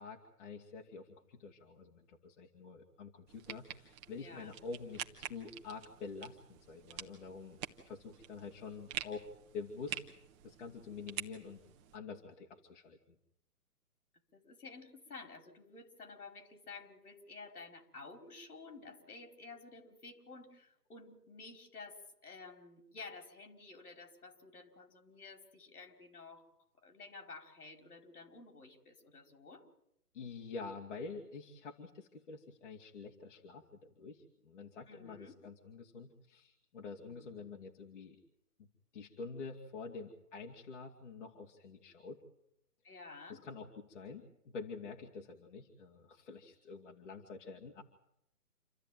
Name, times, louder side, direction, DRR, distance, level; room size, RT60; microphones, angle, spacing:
voice 1, 0.0-9.3 9.5-10.0 10.4-11.6 11.9-13.0 30.1-38.2 38.6-38.7 38.9-42.2 43.3-47.8, left 4 dB, 50° left, 0 dB, 2.6 m, -47 dB
sound 1, 3.3-12.0, right 10 dB, 20° right, 1.3 m, -47 dB
voice 2, 4.1-4.5 14.3-26.4 26.8-29.7 34.9-35.4 37.0-37.3 42.8-43.4, left 3 dB, 70° left, 6 dB, 4.9 m, -52 dB
28.0 x 13.5 x 9.3 m, 0.79 s
figure-of-eight pair, 145°, 46 cm